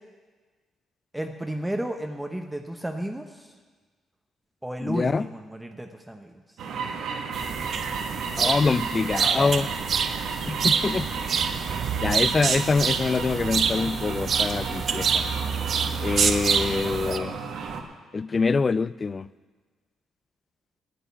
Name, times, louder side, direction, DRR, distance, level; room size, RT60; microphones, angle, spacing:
voice 1, 1.1-3.5 4.6-6.6, right 1 dB, 5° right, 5 dB, 0.8 m, -33 dB
voice 2, 4.8-5.3 8.4-9.7 10.5-11.1 12.0-15.2 16.0-17.4 18.1-19.3, left 4 dB, 35° left, 18 dB, 0.3 m, -25 dB
sound 1, 6.6-17.8, right 5 dB, 75° right, 1.3 m, -34 dB
sound 2, 7.3-17.2, right 6 dB, 55° right, 0.7 m, -27 dB
10.0 x 7.9 x 9.7 m, 1.4 s
cardioid pair, 90°, 0 cm